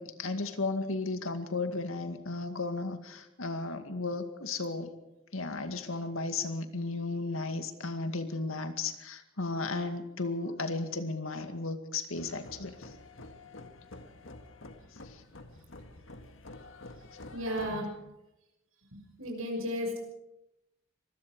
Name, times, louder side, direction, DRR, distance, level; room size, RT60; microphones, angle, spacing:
voice 1, 0.0-4.9 5.3-12.9 15.1-15.2 17.7-17.9, left 3 dB, 85° left, 7 dB, 2.2 m, -34 dB
sound 1, 12.1-17.8, left 2 dB, 70° left, 1.9 m, -49 dB
voice 2, 17.3-17.9 18.9-20.0, equal, 90° right, 1 dB, 6.2 m, -34 dB
25.5 x 20.5 x 4.9 m, 0.92 s
head